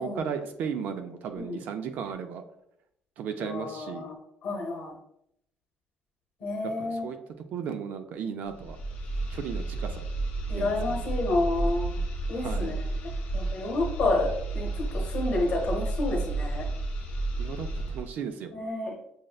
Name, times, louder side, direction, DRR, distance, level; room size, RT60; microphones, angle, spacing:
voice 1, 0.0-2.4 3.2-4.0 6.6-7.2 7.5-8.8 9.3-10.0 10.5-11.0 12.4-12.7 17.4-18.5, right 7 dB, 55° right, 7 dB, 0.3 m, -35 dB
voice 2, 3.4-4.2 4.4-4.9 6.4-7.1 10.5-12.0 12.3-16.7 18.5-18.9, left 2 dB, 45° left, -3 dB, 1.0 m, -30 dB
sound 1, 8.5-18.1, right 2 dB, 60° left, 0.7 m, -32 dB
6.2 x 2.1 x 2.3 m, 0.74 s
cardioid pair, 160°, 4 cm